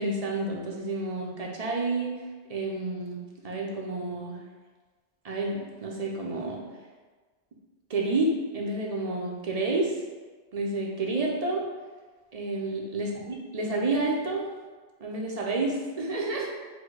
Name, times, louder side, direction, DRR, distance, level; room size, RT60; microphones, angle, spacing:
voice 1, 0.0-2.1 2.5-4.4 5.2-6.6 7.9-9.9 10.5-11.6 12.3-14.5 15.0-16.5, right 2 dB, 40° right, -2 dB, 0.6 m, -29 dB
4.3 x 2.2 x 4.6 m, 1.4 s
omnidirectional pair, 1.1 m